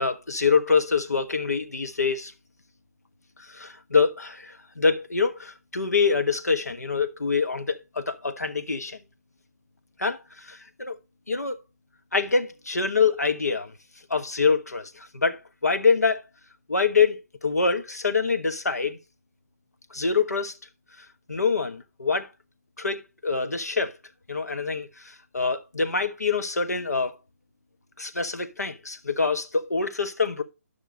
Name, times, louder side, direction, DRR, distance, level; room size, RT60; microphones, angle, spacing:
voice 1, 0.0-2.3 3.4-9.0 10.0-11.0 11.3-11.6 12.1-13.7 14.1-16.2 16.7-19.0 19.9-20.6 21.0-22.3 22.8-23.9 24.3-27.1 28.0-30.4, left 5 dB, 85° left, 1.4 m, -25 dB
11.5 x 6.0 x 3.8 m
figure-of-eight pair, 145°, 8 cm